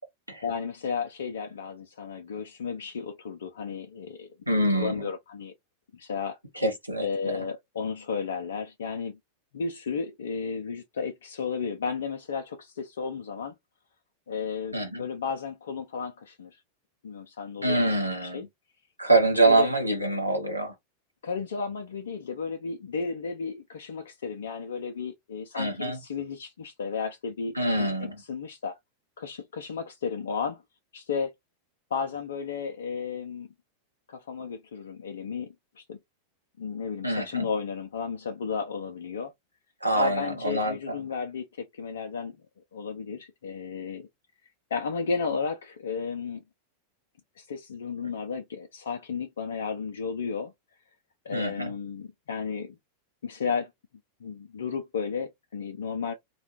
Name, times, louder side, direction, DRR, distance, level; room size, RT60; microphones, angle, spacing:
voice 1, 0.4-4.3 4.7-5.5 5.9-6.4 7.0-9.2 9.5-13.5 14.3-16.6 17.0-18.5 19.4-19.7 21.2-27.9 28.2-28.8 29.2-30.6 30.9-31.3 31.9-33.5 34.1-36.0 36.6-39.3 39.9-42.3 42.7-44.1 44.7-46.4 47.4-50.5 51.2-52.8 53.2-53.7 54.2-56.1, left 5 dB, 65° left, 0.4 m, -33 dB
voice 2, 4.5-4.9 6.6-7.0 14.7-15.0 17.6-18.4 19.0-20.7 25.5-26.0 27.6-28.2 37.0-37.4 39.8-40.9 51.3-51.7, right 2 dB, 85° right, 0.8 m, -25 dB
2.4 x 2.2 x 2.8 m
figure-of-eight pair, 90°, 0 cm